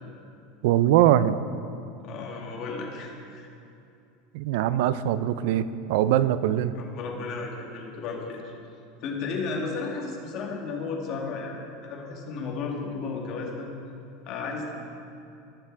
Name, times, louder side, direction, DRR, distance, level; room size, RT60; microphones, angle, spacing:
voice 1, 0.6-1.4 4.3-6.7, right 12 dB, 65° right, 15 dB, 0.5 m, -22 dB
voice 2, 2.0-3.5 6.7-8.4 9.0-13.7 14.3-14.7, left 4 dB, 45° left, 0 dB, 2.1 m, -34 dB
19.0 x 6.7 x 4.7 m, 2.7 s
supercardioid pair, 155°, 0 cm